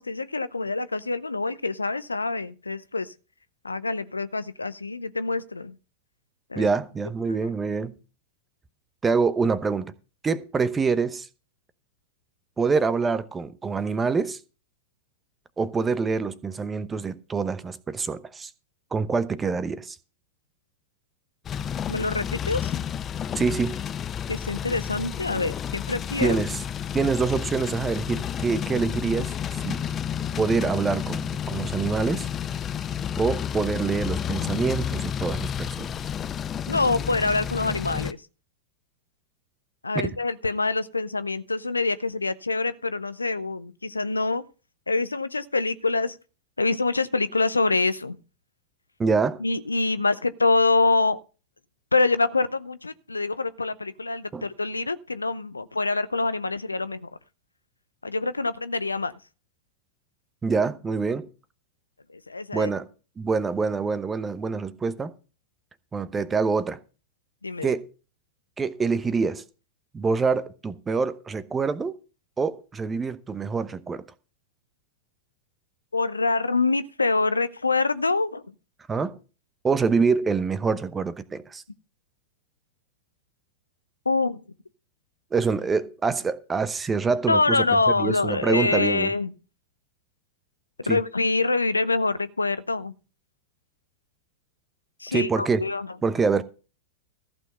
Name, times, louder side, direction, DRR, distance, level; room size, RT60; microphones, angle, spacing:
voice 1, 0.0-3.1 3.6-5.7 6.5-6.7 21.9-22.7 24.3-26.4 36.7-38.2 39.8-44.4 44.9-46.2 46.6-48.2 49.4-51.2 51.9-57.1 58.0-59.2 62.1-62.7 67.4-67.7 75.9-78.4 84.1-84.4 87.3-89.3 90.9-92.9 95.0-95.9, left 3 dB, 85° left, 0.6 m, -25 dB
voice 2, 6.5-8.0 9.0-9.9 10.2-11.3 12.6-14.4 15.6-18.5 18.9-20.0 23.3-23.8 26.2-26.6 26.9-29.9 30.4-32.3 33.2-35.9 39.9-40.1 49.0-49.4 54.3-54.4 60.4-61.3 62.5-62.9 63.2-65.1 65.9-66.8 67.6-67.9 68.6-69.4 69.9-72.0 72.4-74.0 78.9-79.2 79.6-81.6 85.3-89.1 90.9-91.0 95.1-95.6 96.0-96.4, right 4 dB, 15° right, 0.9 m, -25 dB
sound 1, 21.4-38.1, left 8 dB, 25° left, 0.5 m, -31 dB
14.5 x 6.3 x 5.5 m
figure-of-eight pair, 95°, 0 cm